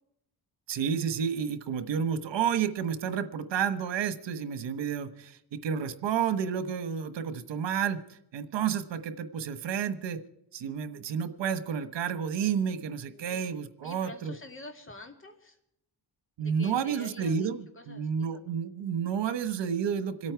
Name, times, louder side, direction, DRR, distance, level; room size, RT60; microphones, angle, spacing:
voice 1, 0.7-10.2 10.5-14.3 16.4-20.3, right 7 dB, 90° right, 12 dB, 1.3 m, -31 dB
voice 2, 13.1-13.4 13.8-15.6 16.4-17.5 17.8-18.5, left 1 dB, 30° left, 5 dB, 2.3 m, -47 dB
26.5 x 8.8 x 4.6 m, 0.80 s
wide cardioid pair, 170°, 42 cm